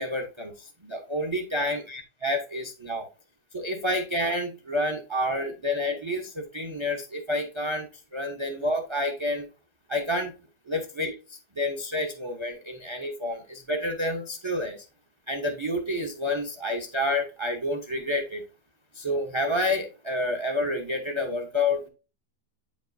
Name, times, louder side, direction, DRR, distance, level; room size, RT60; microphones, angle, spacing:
voice 1, 0.0-3.1 3.5-7.9 8.1-9.5 9.9-10.3 10.7-11.1 11.6-14.8 15.3-18.4 18.9-21.9, left 1 dB, 25° right, 4 dB, 0.6 m, -29 dB
8.1 x 5.2 x 2.6 m, 0.31 s
omnidirectional pair, 1.7 m